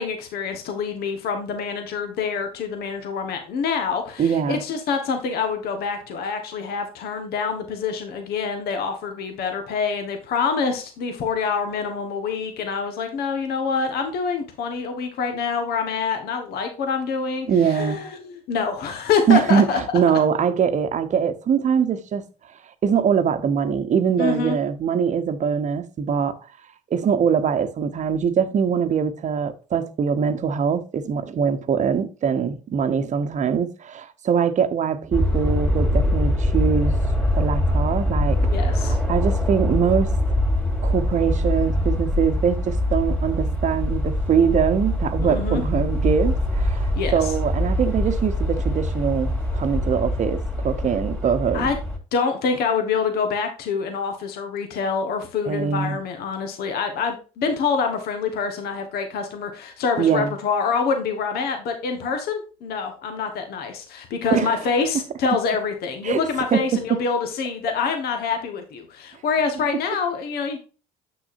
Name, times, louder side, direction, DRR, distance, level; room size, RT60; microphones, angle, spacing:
voice 1, 0.0-19.8 24.2-24.5 38.4-39.0 45.2-45.6 46.9-47.1 51.5-51.8 52.1-70.6, left 5 dB, 60° left, 1.4 m, -26 dB
voice 2, 4.2-4.6 17.5-18.0 19.3-22.2 22.8-26.4 26.9-36.9 37.3-40.1 40.8-51.7 55.5-56.0 60.0-60.3 64.3-64.5 66.0-66.2 66.5-67.0 69.6-69.7, right 7 dB, 40° right, 0.9 m, -22 dB
sound 1, 35.1-52.0, left 1 dB, 5° left, 2.7 m, -23 dB
8.0 x 6.1 x 2.6 m
hypercardioid pair, 65°, 18 cm